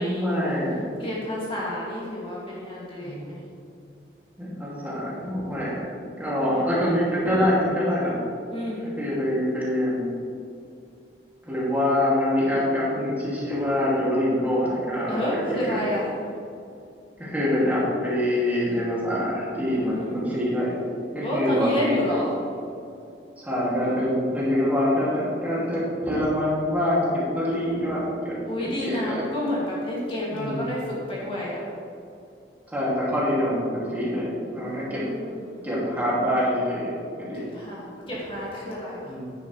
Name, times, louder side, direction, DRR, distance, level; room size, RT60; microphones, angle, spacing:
voice 1, 0.0-0.8 3.0-3.3 4.4-5.8 6.1-8.2 9.0-10.1 11.4-15.9 17.2-20.8 21.1-22.0 23.4-29.2 30.3-30.6 32.7-35.1 35.6-37.4 39.0-39.3, left 1 dB, 10° right, -7 dB, 2.5 m, -25 dB
voice 2, 1.0-3.4 6.4-6.6 8.5-8.9 15.1-16.1 19.8-20.3 21.2-22.3 28.5-30.8 31.1-31.6 34.6-35.6 37.5-39.1, left 1 dB, 30° left, -6 dB, 2.3 m, -30 dB
10.0 x 10.0 x 3.3 m, 2.5 s
head